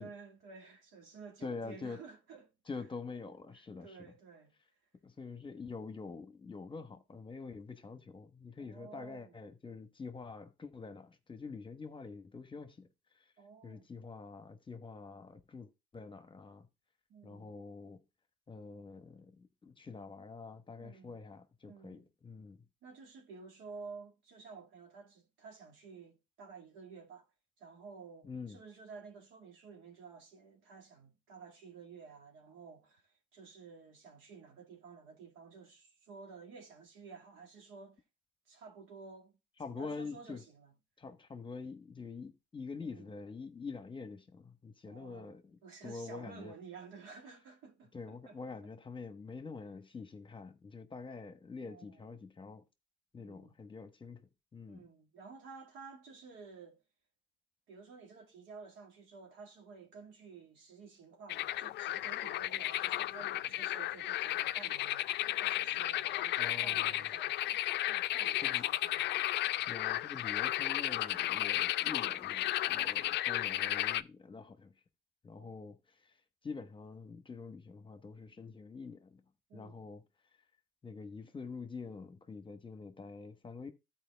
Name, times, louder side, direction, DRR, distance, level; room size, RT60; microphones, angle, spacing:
voice 1, 0.0-2.5 3.5-4.5 8.6-9.4 13.4-13.9 17.1-17.6 20.8-21.2 21.7-22.0 22.8-27.3 27.6-38.0 38.5-40.7 42.8-43.1 44.9-45.3 45.6-48.7 51.6-52.1 53.2-53.5 54.7-56.8 57.7-69.2 75.4-75.5 79.5-79.9, right 5 dB, 75° right, 2.0 m, -53 dB
voice 2, 1.4-2.0 2.7-4.0 5.0-12.9 13.1-13.2 13.6-16.7 17.2-18.0 18.5-22.6 28.2-28.6 39.6-40.4 41.0-46.5 47.9-52.6 53.1-54.2 54.5-54.9 66.4-67.1 68.4-68.6 69.7-74.7 75.2-76.2 76.4-79.2 79.5-80.0 80.8-83.7, left 4 dB, 25° left, 1.1 m, -46 dB
sound 1, 61.3-74.0, left 14 dB, 60° left, 0.4 m, -34 dB
13.5 x 4.5 x 3.4 m
supercardioid pair, 75°, 20 cm